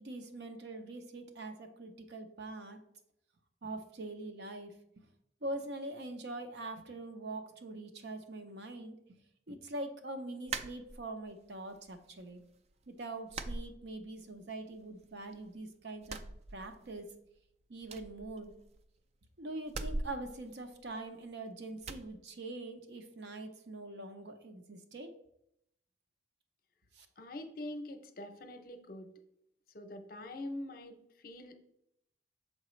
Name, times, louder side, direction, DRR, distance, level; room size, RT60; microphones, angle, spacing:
voice 1, 0.0-2.8 3.6-5.0 5.4-9.2 9.5-12.4 12.9-16.2 16.5-17.1 17.7-18.5 19.4-25.1 26.9-27.1, right 2 dB, 70° right, 6 dB, 0.7 m, -43 dB
sound 1, 10.5-11.4 11.7-12.4 12.7-12.9 13.3-14.4 14.7-15.5 16.0-17.1 17.4-17.5 17.8-19.0 19.6-21.3 21.8-22.1, right 3 dB, 35° right, 0.3 m, -42 dB
voice 2, 27.2-29.1 29.7-31.5, left 1 dB, 55° left, 6 dB, 0.6 m, -44 dB
6.4 x 4.8 x 3.1 m, 0.78 s
head